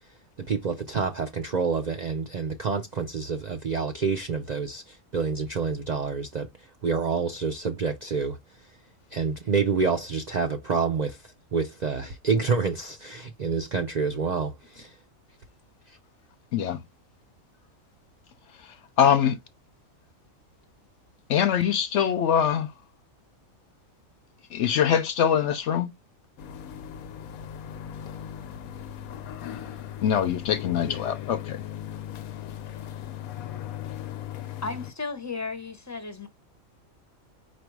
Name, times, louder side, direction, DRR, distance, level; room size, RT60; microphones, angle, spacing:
voice 1, 0.5-6.5 6.8-8.4 9.1-11.2 11.5-14.9, right 5 dB, 55° right, 0.5 m, -28 dB
voice 2, 16.5-16.8 18.6-19.4 21.3-22.7 24.5-25.9 30.0-31.6, left 8 dB, 65° left, 0.8 m, -23 dB
sound 1, 26.4-34.9, left 10 dB, 90° left, 1.1 m, -38 dB
voice 3, 34.6-36.3, left 4 dB, 15° left, 0.6 m, -34 dB
4.7 x 2.5 x 4.6 m
omnidirectional pair, 1.4 m